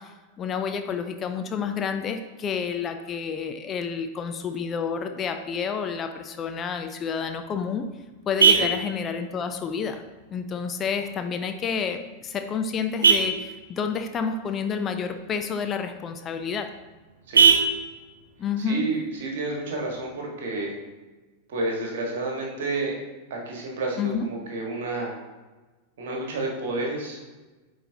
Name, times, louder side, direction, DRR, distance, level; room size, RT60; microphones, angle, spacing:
voice 1, 0.0-7.8 8.3-10.0 10.3-16.7 18.4-18.9 24.0-24.3, left 6 dB, 25° left, 7 dB, 0.4 m, -29 dB
Vehicle horn car horn honking, 7.1-20.1, right 5 dB, 75° right, 0.6 m, -27 dB
voice 2, 18.7-20.7 21.5-23.0 23.3-25.2 26.0-27.2, right 2 dB, 55° right, 0 dB, 1.6 m, -30 dB
9.0 x 4.0 x 2.8 m, 1.2 s
figure-of-eight pair, 90°, 0 cm